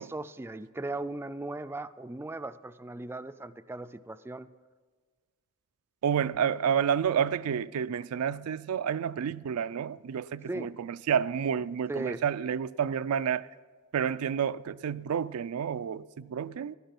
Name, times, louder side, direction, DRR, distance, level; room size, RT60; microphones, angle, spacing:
voice 1, 0.0-4.5 10.5-10.7 11.9-12.2, right 2 dB, 10° right, 0.3 m, -37 dB
voice 2, 6.0-13.5 13.9-16.7, right 8 dB, 80° right, 0.4 m, -30 dB
15.5 x 11.5 x 5.9 m
head